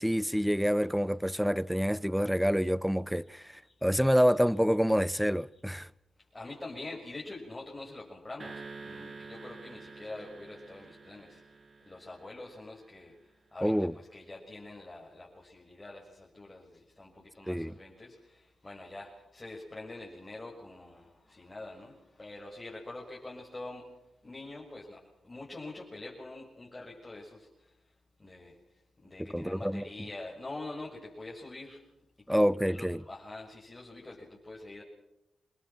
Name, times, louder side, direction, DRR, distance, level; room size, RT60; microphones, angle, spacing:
voice 1, 0.0-5.9 13.6-13.9 17.5-17.7 29.2-30.1 32.3-33.0, equal, ahead, 0.7 m, -27 dB
voice 2, 3.4-3.9 6.3-11.4 11.8-13.1 13.5-23.9 24.2-27.5 28.2-28.6 29.0-31.8 32.3-32.4 32.7-34.8, left 2 dB, 30° left, 6.4 m, -45 dB
sound 1, 8.4-12.9, right 3 dB, 50° right, 2.2 m, -48 dB
26.5 x 20.5 x 6.0 m
supercardioid pair, 40°, 0 cm